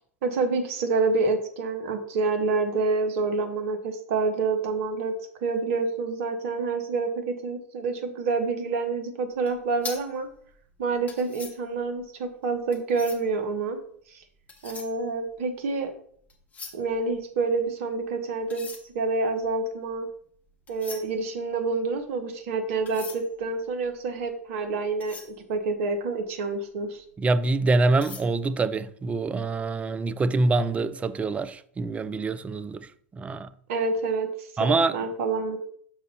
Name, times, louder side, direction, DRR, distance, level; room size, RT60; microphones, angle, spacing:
voice 1, 0.2-5.1 5.4-10.3 10.8-13.8 14.1-14.2 14.6-15.9 16.7-18.7 18.9-20.1 20.7-25.2 25.5-27.0 33.7-34.7 34.9-35.6, right 4 dB, 60° right, 1.2 m, -27 dB
sound 1, 9.4-13.4 14.2-15.9 16.2-17.9 18.4-26.4 26.8-27.0 27.4-28.2, left 5 dB, 20° left, 1.3 m, -44 dB
voice 2, 27.2-33.5 34.6-34.9, right 3 dB, 15° right, 0.4 m, -25 dB
6.2 x 3.9 x 5.5 m
hypercardioid pair, 95°, 8 cm